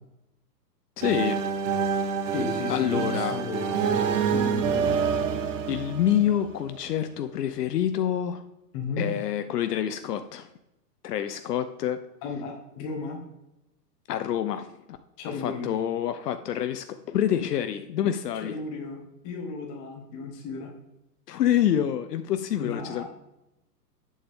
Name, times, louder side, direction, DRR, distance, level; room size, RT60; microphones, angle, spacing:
voice 1, 1.0-1.4 2.7-3.3 5.7-8.4 9.0-10.5 11.0-12.0 14.1-14.7 15.4-18.5 21.3-23.0, left 10 dB, 70° left, 10 dB, 0.7 m, -27 dB
sound 1, 1.0-6.8, right 6 dB, 50° right, 0.8 m, -27 dB
voice 2, 2.3-3.9 4.3-4.9 8.7-9.1 12.2-13.2 15.2-15.7 18.4-20.7 22.6-23.0, left 4 dB, 25° left, 2 dB, 1.5 m, -34 dB
8.6 x 7.1 x 3.5 m, 0.90 s
hypercardioid pair, 160°, 50 cm